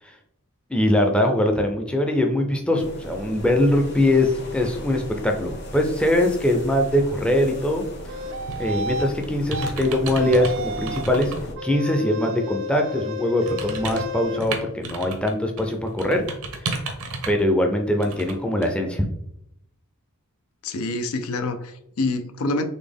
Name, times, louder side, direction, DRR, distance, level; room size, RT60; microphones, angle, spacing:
voice 1, 0.7-7.8 8.6-11.3 11.6-16.2 17.3-19.0, left 1 dB, 5° left, 0.5 m, -22 dB
sound 1, 2.8-11.5, left 1 dB, 50° left, 1.0 m, -38 dB
sound 2, 8.1-9.1 9.5-9.7 10.1-11.1 11.6-14.4, left 1 dB, 60° right, 0.4 m, -32 dB
sound 3, 8.5-8.8 9.2-10.5 10.9-11.4 11.9-12.0 13.4-15.3 15.6-17.4 18.0-18.3 18.6-18.7, right 3 dB, 80° right, 0.8 m, -32 dB
voice 2, 20.6-22.6, left 2 dB, 80° left, 0.5 m, -26 dB
4.1 x 3.2 x 3.4 m
head